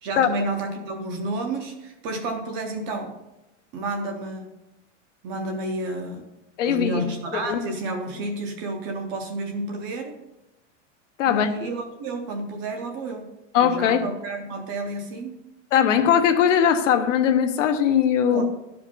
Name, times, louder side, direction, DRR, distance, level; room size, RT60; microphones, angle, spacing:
voice 1, 0.0-3.2 3.7-4.5 5.2-6.3 6.7-10.2 11.2-13.3 13.5-15.3 18.3-18.4, right 2 dB, 20° right, 3 dB, 0.4 m, -30 dB
voice 2, 6.6-7.0 7.5-7.6 11.2-11.5 13.5-14.0 15.7-18.4, left 8 dB, 80° left, 7 dB, 1.1 m, -20 dB
11.5 x 5.1 x 5.3 m, 0.95 s
supercardioid pair, 180°, 37 cm